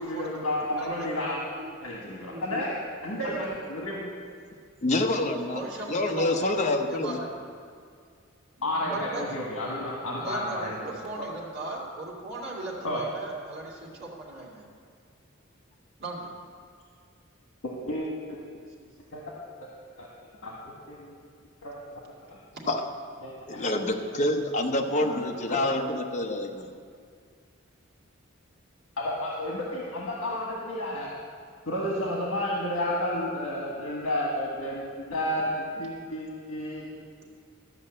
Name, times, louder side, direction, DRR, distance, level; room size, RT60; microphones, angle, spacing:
voice 1, 0.0-1.5 1.8-2.7 3.0-4.0 8.6-10.7 11.2-11.3 12.8-13.0 17.6-18.4 19.1-19.3 19.6-19.7 20.0-20.1 20.4-21.1 21.6-21.8 22.3-22.4 23.2-23.6 25.0-25.6 29.0-31.1 31.6-36.9, left 1 dB, 80° left, -3 dB, 1.4 m, -31 dB
voice 2, 0.8-1.2 1.6-1.7 2.3-2.6 3.3-3.5 5.5-6.5 6.9-7.3 8.6-9.4 10.2-14.6 16.0-16.3, right 2 dB, 50° right, -4 dB, 2.4 m, -38 dB
voice 3, 4.8-5.6 5.9-7.2 22.7-22.8 23.5-26.7, left 1 dB, 35° left, 3 dB, 0.8 m, -27 dB
13.0 x 5.4 x 7.6 m, 2.2 s
head